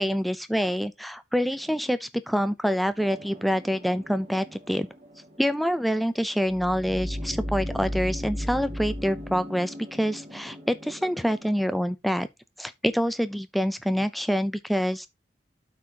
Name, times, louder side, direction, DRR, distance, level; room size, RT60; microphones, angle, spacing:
voice 1, 0.0-4.9 5.4-12.3 12.6-15.1, equal, ahead, 0.4 m, -26 dB
sound 1, 3.0-11.8, equal, 40° right, 1.8 m, -37 dB
12.0 x 4.4 x 2.8 m
head